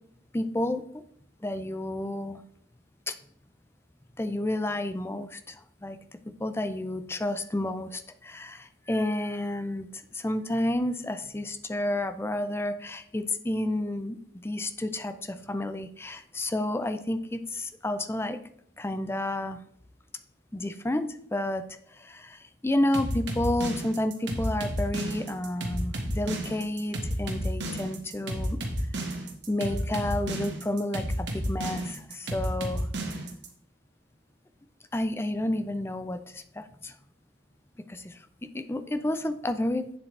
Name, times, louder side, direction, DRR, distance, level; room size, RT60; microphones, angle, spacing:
voice 1, 0.3-1.0 1.4-2.4 3.1-3.2 4.2-6.0 6.4-14.2 14.4-18.4 18.8-19.6 20.5-21.6 21.9-28.6 29.5-32.9 34.9-37.0 37.9-39.9, left 1 dB, 15° left, 10 dB, 0.4 m, -30 dB
sound 1, 22.9-33.5, right 1 dB, 70° right, 1.6 m, -32 dB
8.7 x 7.4 x 3.3 m, 0.65 s
head